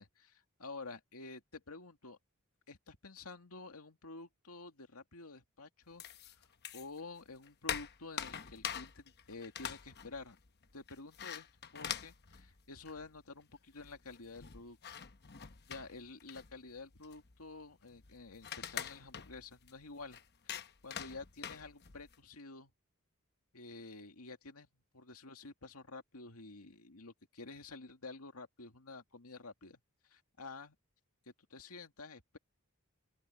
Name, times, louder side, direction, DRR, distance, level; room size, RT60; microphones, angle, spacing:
voice 1, 0.0-2.2 2.7-6.0 6.4-6.5 6.7-10.4 10.7-11.5 11.7-15.0 15.7-20.2 20.4-22.7 23.5-24.7 24.9-29.8 30.1-30.8 31.3-32.4, left 3 dB, 80° left, 2.4 m, -50 dB
sound 1, 6.0-7.0 7.3-13.2 13.5-13.6 13.8-22.2, left 8 dB, 50° left, 1.0 m, -45 dB
open air
head